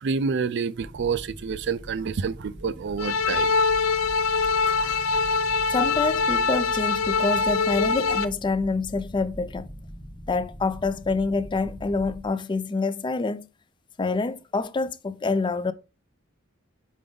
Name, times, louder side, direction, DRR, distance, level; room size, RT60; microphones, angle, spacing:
voice 1, 0.0-3.5 4.8-5.0, right 5 dB, 60° right, 0.4 m, -28 dB
sound 1, 0.8-12.3, equal, 5° left, 1.0 m, -42 dB
sound 2, 3.0-8.2, left 4 dB, 85° left, 0.5 m, -23 dB
voice 2, 5.7-9.7 10.3-13.5 14.0-15.7, left 3 dB, 25° left, 0.3 m, -26 dB
5.2 x 4.8 x 3.8 m
head